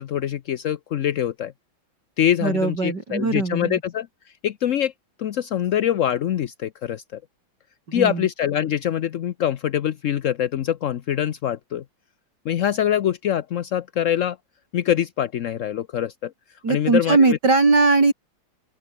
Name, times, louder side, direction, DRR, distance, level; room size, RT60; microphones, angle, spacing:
voice 1, 0.0-1.5 2.2-4.1 4.4-4.9 5.2-7.2 7.9-11.8 12.4-14.4 14.7-16.3 16.7-17.4, left 10 dB, 65° left, 0.8 m, -24 dB
voice 2, 2.4-3.8 7.9-8.2 16.6-18.1, right 3 dB, 55° right, 4.6 m, -19 dB
open air
omnidirectional pair, 2.1 m